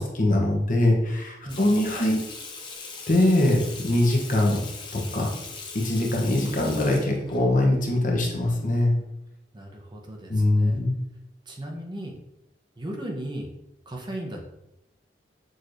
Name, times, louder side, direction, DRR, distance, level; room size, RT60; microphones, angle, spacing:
voice 1, 0.0-2.2 3.1-4.6 4.9-5.3 5.7-8.9 10.3-11.0, left 1 dB, 50° left, 0 dB, 0.9 m, -22 dB
voice 2, 1.4-1.9 8.6-9.0 9.5-10.8 11.5-12.2 12.8-13.5 13.9-14.5, right 1 dB, 25° right, 0 dB, 0.7 m, -37 dB
Water tap faucet / Sink (filling or washing), 1.5-7.4, left 4 dB, 25° left, 0.7 m, -40 dB
6.3 x 3.0 x 2.6 m, 0.84 s
head